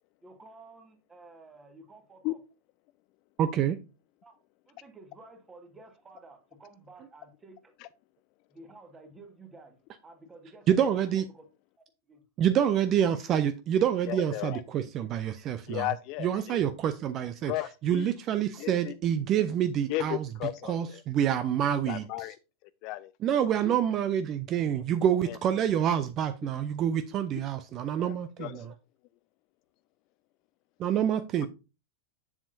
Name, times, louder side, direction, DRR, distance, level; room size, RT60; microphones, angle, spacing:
voice 1, 0.2-2.4 4.2-4.4 4.7-7.6 8.5-9.8 10.0-11.5 12.1-12.2 23.5-23.8, right 2 dB, 15° right, 1.6 m, -51 dB
voice 2, 3.4-3.8 10.7-11.3 12.4-15.9 16.2-17.5 17.8-20.3 20.6-22.3 23.2-28.7 30.8-31.5, right 9 dB, 35° right, 0.5 m, -27 dB
voice 3, 14.1-14.6 15.7-16.6 17.4-18.1 18.6-19.0 19.9-21.0 21.9-22.4 22.8-23.1 25.3-25.4 28.0-28.1 28.4-28.7, left 17 dB, 40° left, 0.4 m, -34 dB
7.3 x 7.1 x 2.6 m
figure-of-eight pair, 90°, 0 cm